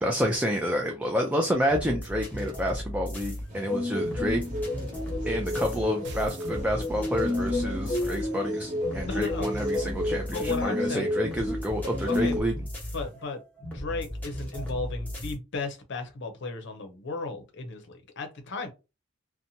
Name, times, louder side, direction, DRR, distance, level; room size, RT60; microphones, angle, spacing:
voice 1, 0.0-4.4 5.3-12.5, equal, 5° right, 0.3 m, -29 dB
sound 1, 1.7-15.3, equal, 10° left, 0.9 m, -37 dB
sound 2, 3.5-12.4, left 1 dB, 40° right, 1.1 m, -31 dB
sound 3, 6.0-7.3, equal, 60° right, 0.7 m, -40 dB
voice 2, 9.0-9.5 10.3-11.0 12.1-12.4 12.9-13.4 13.7-18.7, left 3 dB, 65° left, 0.6 m, -35 dB
2.8 x 2.1 x 2.6 m
head